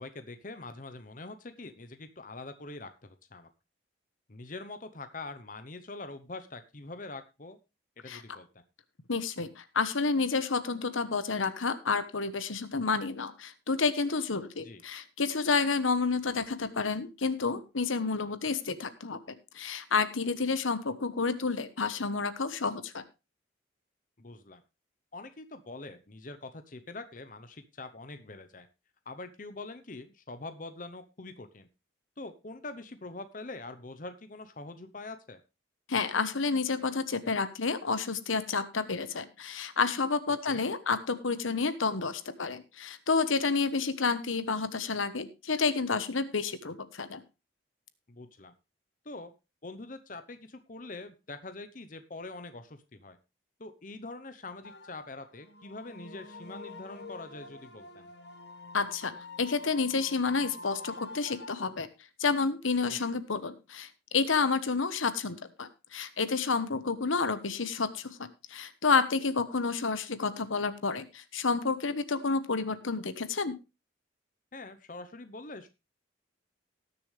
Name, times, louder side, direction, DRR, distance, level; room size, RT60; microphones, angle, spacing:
voice 1, 0.0-3.5 4.3-7.6 8.0-8.5 14.6-14.8 24.2-24.6 25.1-28.7 29.1-31.7 32.2-35.4 40.5-40.6 48.1-48.5 49.0-49.3 49.6-53.2 53.6-58.1 62.8-63.1 74.5-75.7, left 2 dB, 40° left, 10 dB, 0.8 m, -44 dB
voice 2, 9.1-23.0 35.9-47.2 58.7-59.1 59.4-61.9 62.2-73.6, left 4 dB, 90° left, 12 dB, 1.2 m, -30 dB
sound 1, 54.6-61.5, left 3 dB, 55° left, 1.4 m, -47 dB
18.5 x 6.9 x 3.3 m, 0.27 s
head